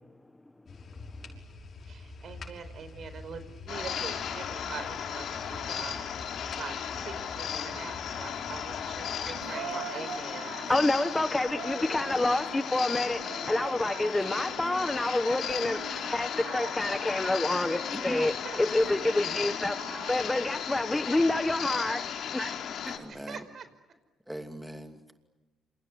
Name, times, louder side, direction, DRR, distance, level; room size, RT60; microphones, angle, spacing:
sound 1, 0.7-9.4, left 3 dB, 50° left, 6.0 m, -46 dB
voice 1, 1.8-10.8 18.1-19.4 23.1-23.7, right 6 dB, 55° right, 11 dB, 4.8 m, -44 dB
sound 2, 3.7-23.0, left 8 dB, 70° left, 4.2 m, -35 dB
voice 2, 9.1-9.9 12.0-12.3 15.7-16.2 17.9-18.3 20.7-21.4 21.9-22.5 22.8-23.4 24.3-25.1, equal, 5° right, 5 dB, 2.7 m, -42 dB
Singing, 9.3-11.1 11.4-12.8 13.1-14.9 15.3-18.1 18.6-21.4, right 7 dB, 85° right, 3.9 m, -44 dB
voice 3, 10.5-18.3 18.6-22.0, left 2 dB, 15° left, 10 dB, 1.2 m, -28 dB
28.0 x 28.0 x 7.6 m, 1.2 s
cardioid pair, 90°, 0 cm